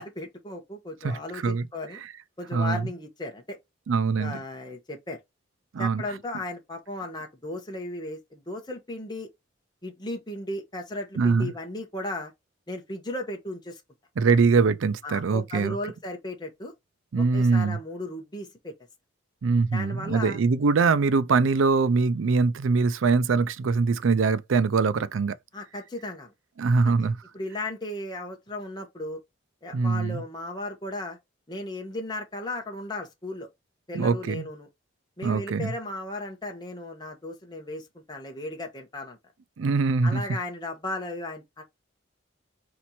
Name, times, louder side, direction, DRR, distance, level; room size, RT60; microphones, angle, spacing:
voice 1, 0.0-2.0 2.4-3.6 4.2-5.2 5.8-9.3 9.8-12.3 12.7-13.8 15.0-16.7 17.2-18.7 19.7-20.4 25.5-26.3 26.8-26.9 27.3-29.2 29.6-31.2 31.5-33.5 33.9-34.7 35.2-39.2 40.0-41.6, left 1 dB, 20° left, 1.0 m, -35 dB
voice 2, 1.0-1.7 2.0-2.1 2.5-2.9 3.9-4.4 5.7-6.0 11.2-11.5 14.2-15.8 17.1-17.8 19.4-25.3 26.6-27.2 29.7-30.2 33.9-34.5 35.2-35.7 39.6-40.2, right 4 dB, 80° right, 0.4 m, -23 dB
4.1 x 3.0 x 4.2 m
head